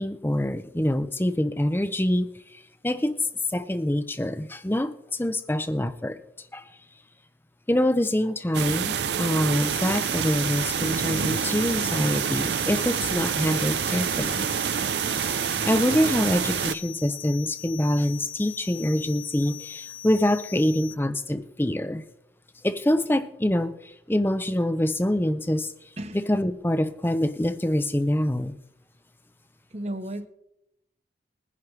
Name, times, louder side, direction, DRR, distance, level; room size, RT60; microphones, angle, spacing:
voice 1, 0.0-6.2 6.5-6.7 7.7-14.5 15.2-22.0 22.6-25.7 26.3-28.6, left 1 dB, 10° left, 0.6 m, -25 dB
sound 1, 8.5-16.8, right 8 dB, 80° right, 0.5 m, -27 dB
sound 2, 9.5-20.9, left 13 dB, 50° left, 0.8 m, -41 dB
voice 2, 26.0-26.3 29.7-30.3, right 1 dB, 40° right, 0.8 m, -34 dB
21.5 x 10.5 x 3.3 m
head